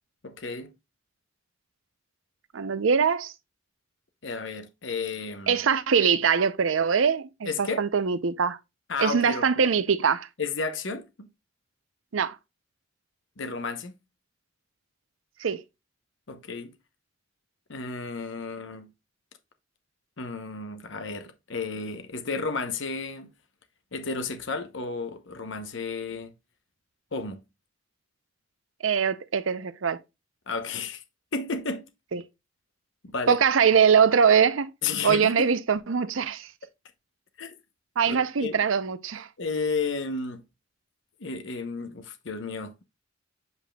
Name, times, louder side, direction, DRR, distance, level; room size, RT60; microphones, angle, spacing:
voice 1, 0.2-0.7 4.2-5.6 7.5-7.9 8.9-9.4 10.4-11.3 13.4-13.9 16.3-16.7 17.7-18.9 20.2-23.3 23.9-26.3 27.1-27.4 30.5-31.0 31.3-31.9 33.0-33.4 34.8-35.5 37.4-37.6 38.1-38.6 39.4-40.4 41.2-42.7, left 4 dB, 65° left, 0.9 m, -32 dB
voice 2, 2.5-3.3 5.5-8.6 9.0-10.3 12.1-12.4 15.4-15.6 28.8-30.0 32.1-32.2 33.3-34.7 35.0-36.5 38.0-39.3, right 6 dB, 85° right, 0.6 m, -22 dB
8.1 x 5.1 x 2.3 m
head